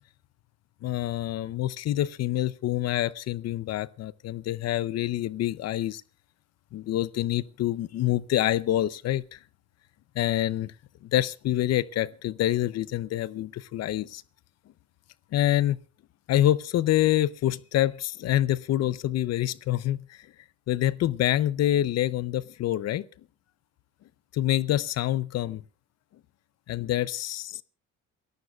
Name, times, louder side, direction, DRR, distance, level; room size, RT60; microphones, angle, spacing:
voice 1, 0.8-6.0 6.7-9.4 10.2-10.7 11.0-14.2 15.3-15.8 16.3-20.3 20.7-23.0 24.3-25.6 26.7-27.6, left 13 dB, 60° left, 0.6 m, -26 dB
28.0 x 14.5 x 2.4 m
cardioid pair, 160°, 29 cm